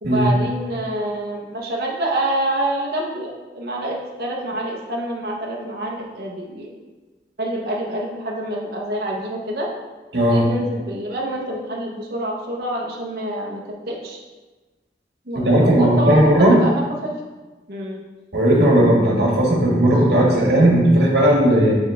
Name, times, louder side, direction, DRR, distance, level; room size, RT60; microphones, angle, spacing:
voice 1, 0.0-6.7 7.4-9.7 10.3-13.6 13.9-14.2 15.3-17.1 17.7-18.0, right 1 dB, 60° right, -3 dB, 1.1 m, -27 dB
voice 2, 10.1-10.5 15.3-16.6 18.3-21.7, right 1 dB, 80° right, -3 dB, 2.0 m, -16 dB
8.2 x 3.5 x 3.6 m, 1.3 s
head